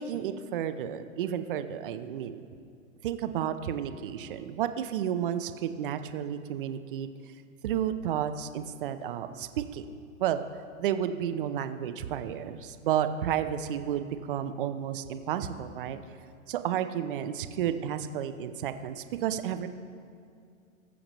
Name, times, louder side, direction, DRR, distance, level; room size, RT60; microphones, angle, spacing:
voice 1, 0.0-2.4 3.0-7.1 7.6-9.9 10.2-10.4 10.8-16.0 16.5-19.7, right 9 dB, 40° right, 10 dB, 0.6 m, -32 dB
19.5 x 7.2 x 3.0 m, 2.4 s
hypercardioid pair, 145°, 42 cm